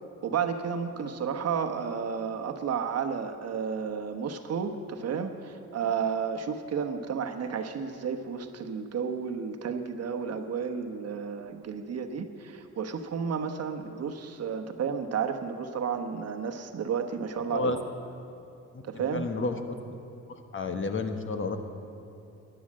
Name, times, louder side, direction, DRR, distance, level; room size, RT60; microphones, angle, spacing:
voice 1, 0.2-17.8 18.9-19.3, right 6 dB, 55° right, 6 dB, 1.2 m, -32 dB
voice 2, 19.1-19.6 20.3-21.6, left 3 dB, 40° left, 7 dB, 1.3 m, -30 dB
13.5 x 10.0 x 7.7 m, 2.9 s
cardioid pair, 90°, 30 cm